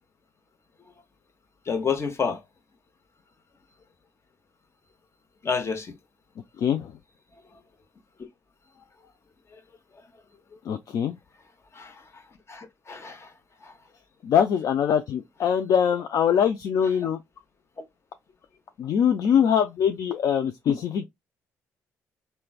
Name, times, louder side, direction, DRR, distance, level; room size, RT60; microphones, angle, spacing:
voice 1, 1.7-2.4 5.4-5.9 11.8-11.9 12.5-13.2, left 5 dB, 40° left, 0.8 m, -28 dB
voice 2, 6.6-6.9 10.7-11.1 14.2-17.2 18.8-21.0, left 8 dB, 55° left, 0.3 m, -23 dB
3.1 x 2.1 x 2.3 m
hypercardioid pair, 55°, 7 cm